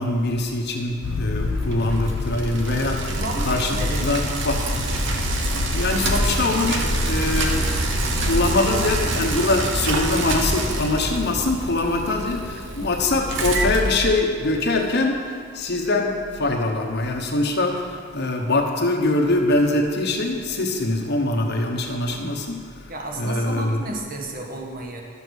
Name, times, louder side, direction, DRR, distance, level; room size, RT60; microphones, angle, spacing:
voice 1, 0.0-3.1 3.4-4.7 5.6-23.8, left 2 dB, 55° left, 2 dB, 1.1 m, -23 dB
sound 1, 1.0-9.0, left 2 dB, 75° left, 0.5 m, -29 dB
Bicycle, 1.5-14.7, right 2 dB, 65° right, 1.1 m, -26 dB
voice 2, 3.1-4.2 22.9-25.0, right 2 dB, 45° right, 1 dB, 1.4 m, -32 dB
12.0 x 6.9 x 6.3 m, 2.1 s
head